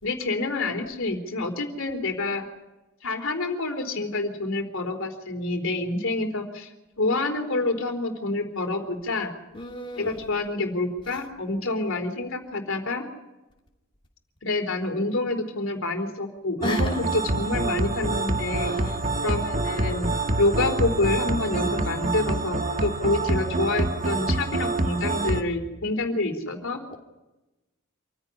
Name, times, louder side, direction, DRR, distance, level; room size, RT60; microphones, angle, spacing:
voice 1, 0.0-2.5 3.0-6.7 7.0-9.3 10.0-13.0 14.4-19.0 19.2-20.1 20.4-26.8, left 2 dB, 65° left, 6 dB, 3.8 m, -27 dB
voice 2, 9.5-10.2 16.6-17.0 18.6-19.3, left 2 dB, 25° left, 0 dB, 2.9 m, -34 dB
sound 1, 16.6-25.4, right 2 dB, 40° right, 1.6 m, -26 dB
27.5 x 16.0 x 9.9 m, 1.0 s
head